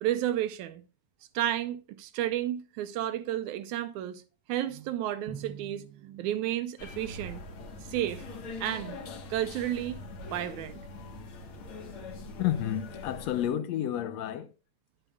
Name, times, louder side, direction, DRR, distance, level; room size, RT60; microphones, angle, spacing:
voice 1, 0.0-0.8 1.3-4.2 4.5-7.4 7.9-8.2 8.6-9.0 9.3-10.0 10.3-10.8, right 12 dB, 80° right, 2.0 m, -32 dB
Drum, 5.3-7.4, right 7 dB, 55° right, 1.0 m, -47 dB
sound 1, 6.8-13.5, left 2 dB, 55° left, 1.7 m, -43 dB
voice 2, 12.4-14.5, left 11 dB, 75° left, 1.7 m, -30 dB
10.0 x 8.9 x 2.3 m
omnidirectional pair, 3.6 m